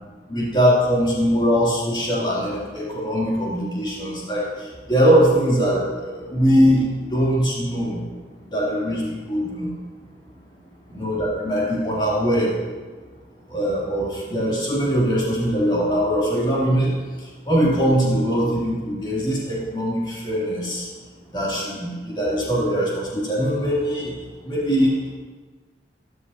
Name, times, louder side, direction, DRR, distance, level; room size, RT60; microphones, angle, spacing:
voice 1, 0.3-8.0 8.4-9.7 10.9-12.5 13.5-16.9 17.2-20.9 21.3-24.2 24.4-24.9, equal, 25° left, -7 dB, 2.9 m, -21 dB
14.0 x 14.0 x 2.8 m, 1.3 s
head